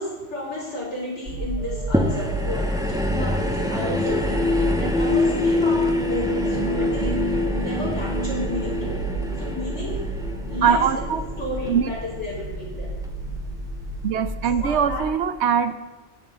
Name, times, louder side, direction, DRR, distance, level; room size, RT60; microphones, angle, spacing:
voice 1, 0.0-3.3 3.7-4.5 4.8-9.0 9.4-10.0 10.5-12.9 14.6-15.0, left 1 dB, 70° left, -7 dB, 5.4 m, -32 dB
sound 1, 1.3-15.0, right 1 dB, 85° right, 4.7 m, -31 dB
sound 2, 1.6-12.3 13.2-13.3, left 2 dB, 50° left, 1.9 m, -27 dB
sound 3, 1.9-12.4 13.0-13.1, equal, 5° right, 1.0 m, -30 dB
voice 2, 10.6-11.2 11.7-11.9 14.0-15.8, right 7 dB, 70° right, 12 dB, 0.8 m, -22 dB
19.5 x 7.3 x 4.1 m, 1.2 s
omnidirectional pair, 1.3 m